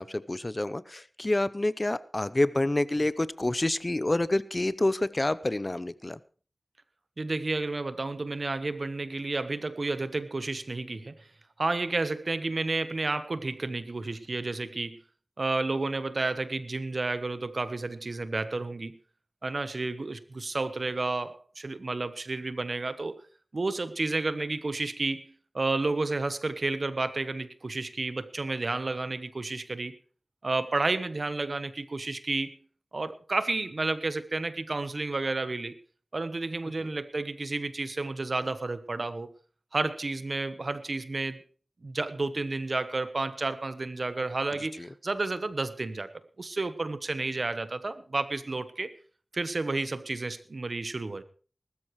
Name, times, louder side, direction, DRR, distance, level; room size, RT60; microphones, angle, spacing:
voice 1, 0.0-6.2 44.8-44.9, left 1 dB, 35° left, 0.7 m, -28 dB
voice 2, 7.2-11.3 11.6-15.0 15.4-19.0 19.4-23.2 23.5-29.9 30.4-32.6 32.9-35.7 36.1-39.3 39.7-41.4 41.8-48.9 49.3-51.2, right 3 dB, 70° right, 1.0 m, -31 dB
19.5 x 13.0 x 3.2 m
wide cardioid pair, 50°, 0 cm